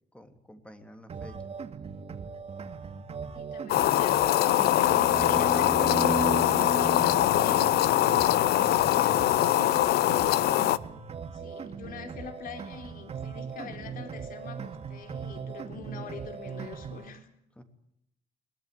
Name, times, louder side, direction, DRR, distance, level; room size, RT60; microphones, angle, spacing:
voice 1, 0.1-1.4 17.6-17.7, equal, 5° left, 8 dB, 3.1 m, -49 dB
sound 1, 1.1-17.1, right 5 dB, 35° right, 2.3 m, -40 dB
voice 2, 3.3-7.7 11.3-17.3, left 6 dB, 55° left, 7 dB, 4.1 m, -44 dB
sound 2, 3.7-10.8, left 14 dB, 70° left, 0.9 m, -23 dB
sound 3, 4.7-9.0, right 3 dB, 20° right, 2.6 m, -35 dB
22.0 x 18.5 x 8.5 m, 0.77 s
cardioid pair, 110°, 17 cm